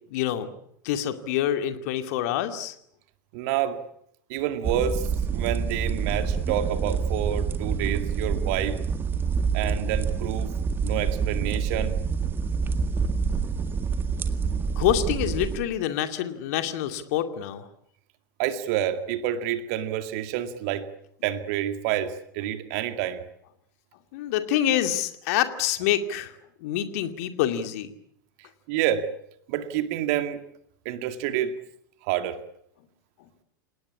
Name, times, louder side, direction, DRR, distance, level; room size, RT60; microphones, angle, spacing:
voice 1, 0.1-0.5 0.8-2.7 14.8-17.6 24.1-26.3 26.6-27.9, left 11 dB, 50° left, 8 dB, 2.5 m, -26 dB
voice 2, 3.3-3.8 4.3-8.8 9.5-10.5 10.8-11.9 18.4-20.9 21.2-23.2 28.7-29.0 29.5-30.5 30.9-31.5 32.0-32.4, right 11 dB, 45° right, 10 dB, 2.1 m, -28 dB
sound 1, 4.6-15.6, right 5 dB, 20° right, 1.9 m, -27 dB
29.0 x 18.5 x 8.6 m, 0.71 s
figure-of-eight pair, 90°, 11 cm